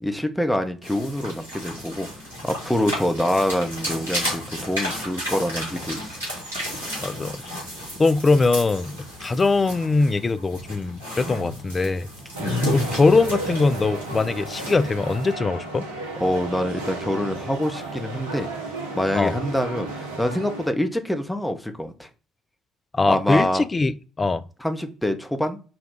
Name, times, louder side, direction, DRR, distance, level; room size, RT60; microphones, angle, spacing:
voice 1, 0.0-2.1 2.4-6.2 12.4-12.5 16.2-18.5 18.9-22.1 23.0-23.7 24.6-25.6, left 1 dB, 5° left, 0.7 m, -25 dB
sound 1, 0.8-15.3, equal, 90° left, 1.8 m, -33 dB
voice 2, 7.0-7.4 8.0-12.1 12.7-15.9 19.2-19.3 22.9-24.4, left 3 dB, 25° left, 0.3 m, -21 dB
sound 2, 12.3-20.7, right 3 dB, 75° right, 0.7 m, -33 dB
4.2 x 2.3 x 3.6 m
figure-of-eight pair, 50°, 0 cm